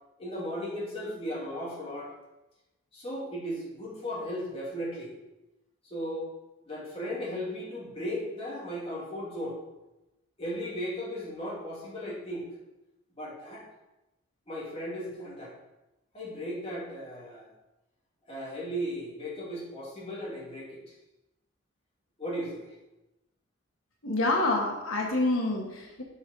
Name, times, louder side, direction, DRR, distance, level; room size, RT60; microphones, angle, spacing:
voice 1, 0.2-2.2 2.9-5.1 5.8-6.3 6.6-9.6 10.4-12.4 13.2-13.6 14.5-15.5 16.1-17.5 18.3-20.9 22.2-22.7, equal, 30° left, -5 dB, 2.5 m, -36 dB
voice 2, 24.0-26.0, left 2 dB, 85° left, 0 dB, 1.4 m, -27 dB
7.2 x 6.2 x 5.3 m, 0.99 s
head